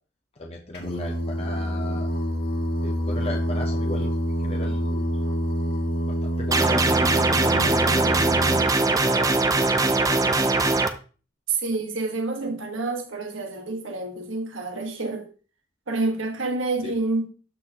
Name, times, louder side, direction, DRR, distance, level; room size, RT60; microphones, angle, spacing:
voice 1, 0.4-2.1 2.8-5.2 6.0-7.0 7.3-8.5 8.8-10.4 16.8-16.9, left 2 dB, 30° left, 0.8 m, -37 dB
Singing, 0.7-8.6, equal, 60° left, 2.3 m, -26 dB
sound 1, 6.5-10.9, right 3 dB, 20° right, 0.5 m, -21 dB
voice 2, 11.5-15.3 15.9-17.2, right 3 dB, 90° right, 1.5 m, -28 dB
12.5 x 4.2 x 2.9 m
head